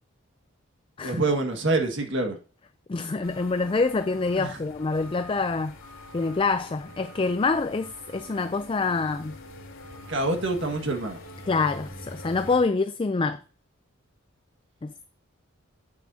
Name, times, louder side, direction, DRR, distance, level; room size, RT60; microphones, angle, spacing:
voice 1, 1.0-2.4 4.4-4.6 10.1-11.2, right 2 dB, 60° right, 1.8 m, -26 dB
voice 2, 2.9-5.8 6.1-9.4 11.5-13.4 14.8-15.0, left 4 dB, 25° left, 0.3 m, -26 dB
sound 1, 3.2-12.6, left 1 dB, 85° left, 2.7 m, -45 dB
9.6 x 8.1 x 2.7 m
head